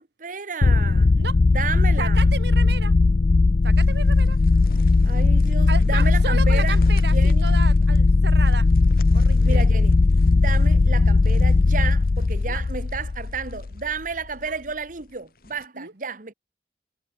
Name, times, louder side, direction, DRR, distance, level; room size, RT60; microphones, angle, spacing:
voice 1, 0.0-1.1 1.4-2.3 5.0-6.8 7.1-7.5 9.4-10.0 10.3-16.3, right 5 dB, 45° right, 1.2 m, -32 dB
sound 1, 0.6-13.9, left 3 dB, 40° left, 0.4 m, -18 dB
voice 2, 2.0-2.9 3.6-4.4 5.7-8.7 9.1-9.6 12.5-12.6 14.5-14.6 15.7-15.9, right 4 dB, 70° right, 3.0 m, -33 dB
sound 2, 3.7-15.7, left 3 dB, 55° left, 4.7 m, -51 dB
head